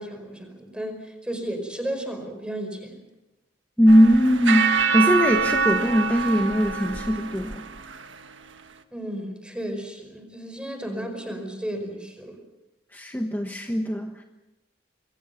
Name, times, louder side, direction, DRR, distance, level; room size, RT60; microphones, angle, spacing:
voice 1, 0.0-3.0 8.9-12.4, right 1 dB, 5° right, 6 dB, 5.0 m, -33 dB
voice 2, 3.8-7.7 12.9-14.2, equal, 10° left, 3 dB, 1.3 m, -20 dB
sound 1, 3.9-8.2, right 5 dB, 85° right, 1.5 m, -25 dB
26.5 x 23.0 x 5.9 m, 0.97 s
head